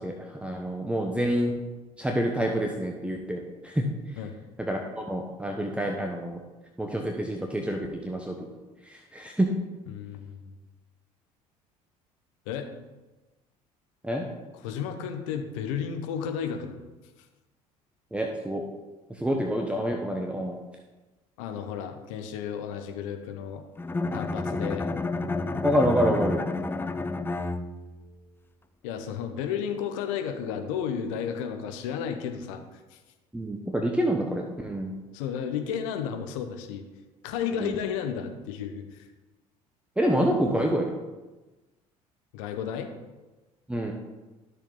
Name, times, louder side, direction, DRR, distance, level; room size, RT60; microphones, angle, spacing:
voice 1, 0.0-1.6 2.0-4.2 4.6-6.4 6.8-8.4 8.8-9.5 14.0-14.3 18.1-18.6 19.1-20.6 25.6-26.4 33.3-34.9 37.6-37.7 40.0-40.9 43.7-43.9, equal, 5° right, 2 dB, 1.2 m, -27 dB
voice 2, 9.9-10.6 12.4-12.7 14.6-16.8 17.2-17.3 21.4-23.6 24.1-24.9 28.8-33.0 35.1-36.8 37.2-39.1 42.3-42.9, left 8 dB, 65° left, 6 dB, 1.2 m, -33 dB
Bowed string instrument, 23.8-28.1, left 3 dB, 10° left, 0.5 m, -30 dB
12.5 x 6.6 x 3.9 m, 1.1 s
figure-of-eight pair, 60°, 19 cm